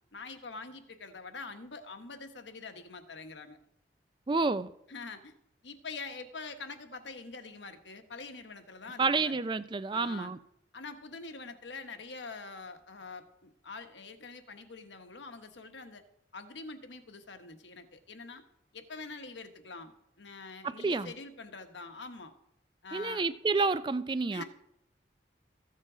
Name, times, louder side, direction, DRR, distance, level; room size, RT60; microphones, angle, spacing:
voice 1, 0.1-3.6 4.9-5.3 5.6-9.4 9.9-10.3 10.7-16.0 16.3-18.4 18.7-19.9 20.2-22.3 22.8-23.3 24.3-24.4, left 4 dB, 90° left, 1.2 m, -45 dB
voice 2, 4.3-4.7 9.0-10.4 20.6-21.1 22.9-24.4, right 4 dB, 25° right, 0.3 m, -29 dB
14.5 x 7.5 x 5.0 m
head